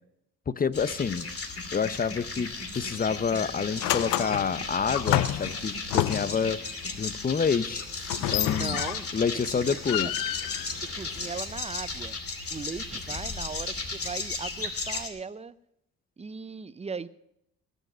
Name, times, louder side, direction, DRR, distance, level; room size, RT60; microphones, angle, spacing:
voice 1, 0.5-1.3 1.7-6.6 7.0-7.9 8.2-8.8 9.1-10.1, left 6 dB, 25° left, 17 dB, 0.7 m, -28 dB
sound 1, 0.7-15.1, left 3 dB, 45° left, 2.6 m, -35 dB
sound 2, 2.7-3.0 3.3-6.5 8.0-9.3 9.6-11.5, left 14 dB, 80° left, 0.6 m, -30 dB
voice 2, 8.5-9.1 9.3-10.1 10.7-12.2 12.5-15.5 16.2-17.1, right 5 dB, 20° right, 16 dB, 0.6 m, -38 dB
19.0 x 8.1 x 6.2 m, 0.78 s
supercardioid pair, 65°, 32 cm